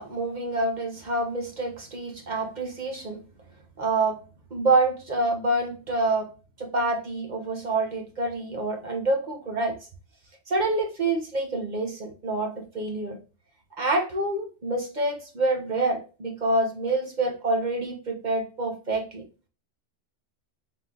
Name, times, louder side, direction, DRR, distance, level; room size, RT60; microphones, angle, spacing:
voice 1, 0.0-3.2 3.8-4.2 4.5-6.3 6.6-9.8 10.5-13.2 13.8-19.2, right 2 dB, 40° right, 2 dB, 1.0 m, -27 dB
3.8 x 3.1 x 3.7 m, 0.34 s
omnidirectional pair, 1.2 m